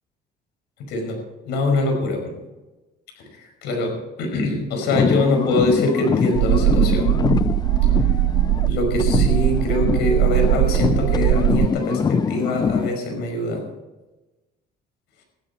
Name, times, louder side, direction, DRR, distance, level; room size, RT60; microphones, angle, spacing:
voice 1, 0.8-1.2 1.4-2.3 3.3-7.1 8.6-13.6, left 2 dB, 90° left, 3 dB, 5.4 m, -23 dB
sound 1, 4.8-8.7 9.0-13.0, left 6 dB, 25° left, 0.4 m, -24 dB
sound 2, 6.4-11.7, right 17 dB, 85° right, 0.4 m, -20 dB
15.5 x 13.0 x 4.4 m, 1.1 s
cardioid pair, 110°, 17 cm